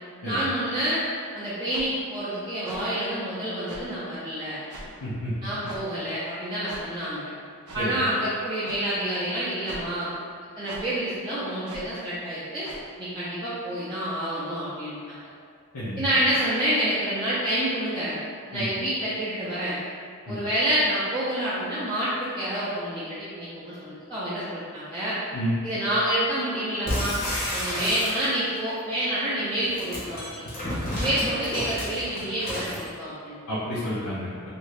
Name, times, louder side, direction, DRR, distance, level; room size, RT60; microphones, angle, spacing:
voice 1, 0.2-1.0 1.3-4.6 5.4-7.2 7.7-10.1 10.6-12.7 13.0-15.2 16.0-18.2 18.5-19.8 20.3-25.2 25.6-27.2 27.5-30.4 31.0-33.4, right 1 dB, 20° right, -12 dB, 0.5 m, -28 dB
sound 1, 1.7-1.9 2.6-2.8 3.7-3.8 4.7-4.9 5.6-5.8 6.7-6.8 7.7-7.8 8.6-8.8 9.7-9.9 10.7-10.8 11.7-11.8 12.6-12.8, right 1 dB, 85° right, 0.6 m, -41 dB
voice 2, 5.0-5.3 7.8-7.9 15.7-16.0 18.5-18.7 20.3-20.4 25.3-25.5 33.5-34.5, equal, 80° left, -11 dB, 0.7 m, -30 dB
sound 2, 26.9-28.6 29.6-32.9, left 1 dB, 40° left, 0.8 m, -31 dB
2.7 x 2.6 x 3.2 m, 2.2 s
head